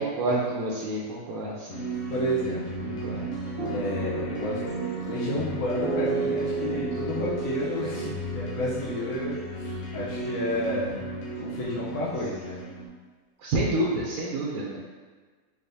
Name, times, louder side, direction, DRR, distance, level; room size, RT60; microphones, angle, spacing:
voice 1, 0.0-1.8 2.8-3.3 13.4-14.8, right 2 dB, 90° right, -4 dB, 1.1 m, -28 dB
sound 1, 1.7-12.9, right 2 dB, 65° left, 1.0 m, -35 dB
voice 2, 2.1-2.9 3.7-4.6 5.0-12.6, left 1 dB, 80° left, -7 dB, 1.2 m, -31 dB
sound 2, 3.6-9.6, right 4 dB, 55° right, 1.3 m, -34 dB
3.8 x 3.4 x 2.6 m, 1.4 s
omnidirectional pair, 1.5 m